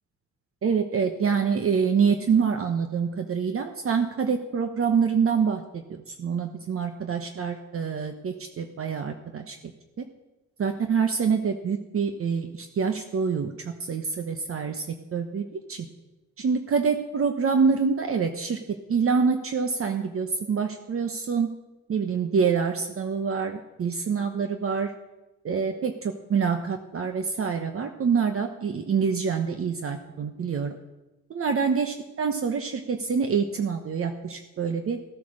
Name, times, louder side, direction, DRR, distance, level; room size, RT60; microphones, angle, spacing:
voice 1, 0.6-9.6 10.0-10.1 10.6-15.9 16.4-21.5 21.9-24.9 25.4-30.7 31.3-35.0, right 6 dB, 45° right, 6 dB, 1.1 m, -26 dB
15.5 x 9.2 x 6.5 m, 1.0 s
cardioid pair, 90°, 30 cm